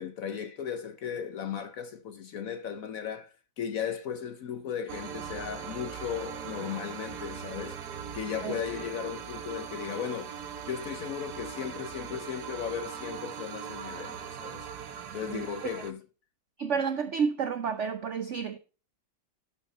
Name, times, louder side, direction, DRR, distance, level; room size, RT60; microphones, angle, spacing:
voice 1, 0.0-7.8 8.1-10.3 10.7-14.7 15.1-16.0, left 8 dB, 65° left, 0.9 m, -36 dB
sound 1, 4.9-15.9, right 8 dB, 60° right, 1.4 m, -40 dB
voice 2, 15.3-15.8 16.6-18.6, right 6 dB, 85° right, 0.6 m, -31 dB
11.5 x 5.5 x 4.1 m
omnidirectional pair, 2.1 m